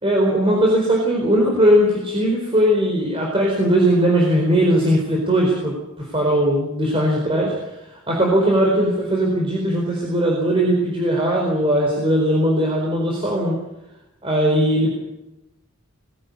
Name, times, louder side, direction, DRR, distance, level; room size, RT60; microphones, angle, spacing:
voice 1, 0.0-7.5 7.9-13.6 14.2-14.9, right 1 dB, 25° right, -1 dB, 4.4 m, -19 dB
21.0 x 16.5 x 8.4 m, 0.96 s
head